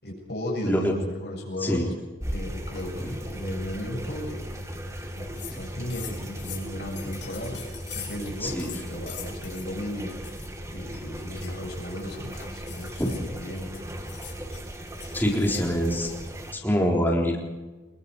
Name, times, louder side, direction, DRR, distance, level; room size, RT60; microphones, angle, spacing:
voice 1, 0.0-1.9 2.3-4.8 5.0-7.6 7.9-10.2 10.7-13.7, left 1 dB, 65° left, 0 dB, 7.1 m, -35 dB
sound 1, 2.2-16.5, equal, 15° right, 2.3 m, -37 dB
sound 2, 5.0-5.1 5.3-5.6 5.9-8.3 8.6-9.7 10.1-10.5 10.9-15.7, left 9 dB, 85° left, 5.9 m, -43 dB
voice 2, 8.4-8.7 15.1-16.1 16.5-17.4, equal, 10° left, -1 dB, 3.8 m, -24 dB
26.5 x 22.0 x 4.8 m, 1.2 s
head